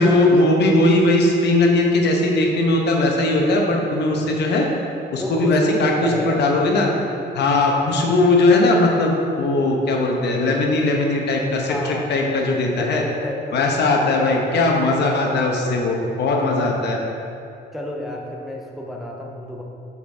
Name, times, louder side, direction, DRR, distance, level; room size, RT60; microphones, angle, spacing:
voice 1, 0.0-4.7 5.1-6.9 7.3-13.0 13.5-17.0, left 2 dB, 65° left, 0 dB, 0.9 m, -19 dB
voice 2, 5.2-6.4 7.5-7.6 11.7-12.1 12.8-14.4 16.3-16.7 17.7-19.6, equal, ahead, -1 dB, 0.4 m, -30 dB
6.7 x 5.1 x 3.4 m, 2.7 s
cardioid pair, 155°, 19 cm